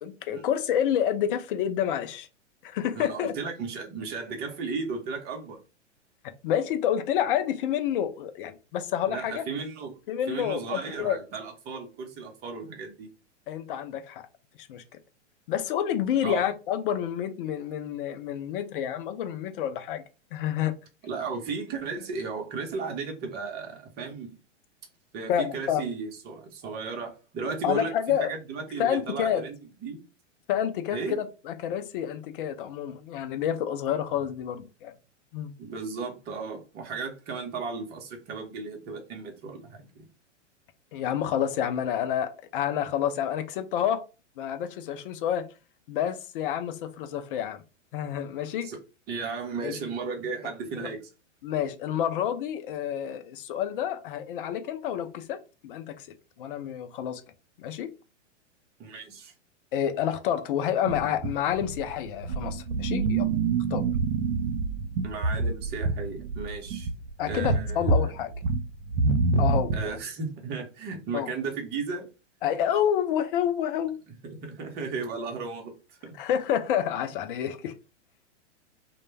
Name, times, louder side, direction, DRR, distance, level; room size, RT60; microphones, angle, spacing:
voice 1, 0.0-2.3 2.6-3.3 6.2-9.4 10.1-11.2 13.5-14.3 14.6-14.8 15.5-20.0 20.3-20.8 25.3-25.8 27.6-28.3 28.8-29.4 30.5-34.9 35.3-35.5 40.9-44.0 44.4-45.5 45.9-47.6 47.9-48.7 49.6-49.8 50.8-50.9 51.4-56.1 56.4-57.2 57.6-57.9 59.7-63.3 63.7-63.8 67.2-68.3 69.4-70.0 71.1-71.3 72.4-74.0 76.2-77.7, left 9 dB, 45° left, 0.5 m, -29 dB
voice 2, 2.9-5.6 9.1-10.0 10.3-13.1 16.2-16.4 21.0-24.4 25.1-27.9 28.2-29.5 29.8-30.0 30.9-31.2 35.6-40.1 48.6-48.8 49.1-51.0 58.8-59.3 65.0-66.9 67.3-67.8 69.7-72.1 74.2-76.1, right 4 dB, 25° right, 0.7 m, -35 dB
sound 1, 60.8-70.0, right 3 dB, 70° right, 0.5 m, -27 dB
2.1 x 2.1 x 3.1 m
hypercardioid pair, 110°, 37 cm